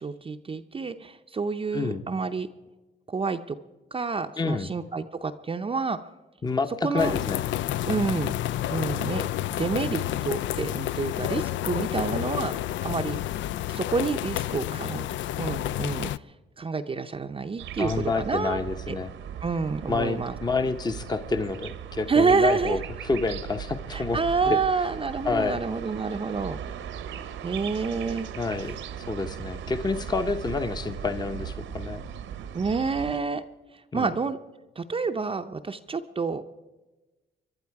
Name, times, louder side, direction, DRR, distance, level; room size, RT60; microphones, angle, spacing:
voice 1, 0.0-2.5 3.1-3.6 3.9-6.0 6.8-7.1 7.8-8.3 8.7-12.5 12.8-13.2 13.7-15.1 15.4-16.1 16.6-18.6 18.9-19.0 19.4-20.3 22.1-22.8 23.9-26.6 27.4-28.3 32.5-33.4 33.9-34.4 34.8-36.4, right 4 dB, 25° right, 5 dB, 0.6 m, -28 dB
voice 2, 4.4-4.7 6.4-7.4 17.8-19.1 19.9-24.2 24.5-24.6 25.2-25.6 28.4-28.8 29.1-32.0 33.9-34.1, left 3 dB, 20° left, 9 dB, 0.8 m, -28 dB
sound 1, 7.0-16.2, left 13 dB, 70° left, 0.4 m, -30 dB
sound 2, 17.6-33.2, right 9 dB, 80° right, 1.1 m, -38 dB
21.5 x 11.5 x 4.7 m, 1.1 s
cardioid pair, 90°, 20 cm